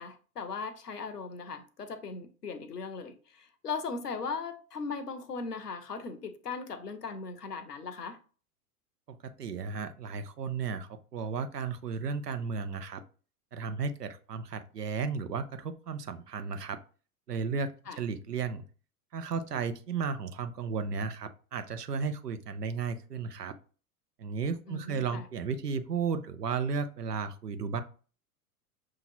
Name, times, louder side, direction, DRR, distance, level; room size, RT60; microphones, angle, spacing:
voice 1, 0.0-8.2 17.9-18.0 24.7-25.3, left 4 dB, 85° left, 0.7 m, -38 dB
voice 2, 9.1-13.0 13.5-16.8 17.3-17.7 18.0-18.6 19.1-23.6 24.2-27.8, right 5 dB, 85° right, 0.6 m, -34 dB
6.0 x 2.8 x 2.7 m
figure-of-eight pair, 85°, 46 cm